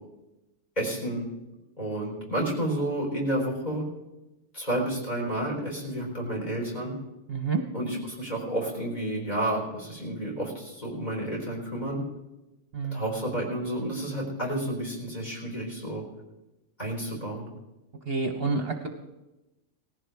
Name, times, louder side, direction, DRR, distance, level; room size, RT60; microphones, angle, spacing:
voice 1, 0.8-1.3 1.8-3.8 4.5-6.9 7.7-12.0 12.9-16.0 16.8-17.5, right 1 dB, 30° left, -1 dB, 4.0 m, -30 dB
voice 2, 7.3-7.6 12.7-13.1 18.1-18.9, right 4 dB, 50° right, 4 dB, 1.1 m, -28 dB
18.5 x 15.0 x 3.4 m, 1.0 s
omnidirectional pair, 1.4 m